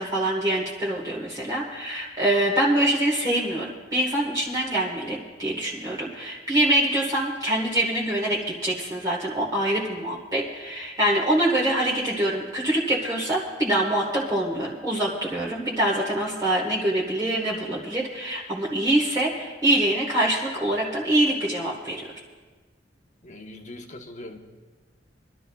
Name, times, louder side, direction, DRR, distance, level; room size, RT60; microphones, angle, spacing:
voice 1, 0.0-22.1, right 1 dB, 20° right, -4 dB, 1.4 m, -25 dB
voice 2, 23.2-24.4, left 1 dB, 40° left, 4 dB, 1.0 m, -41 dB
27.0 x 12.0 x 2.3 m, 1.4 s
head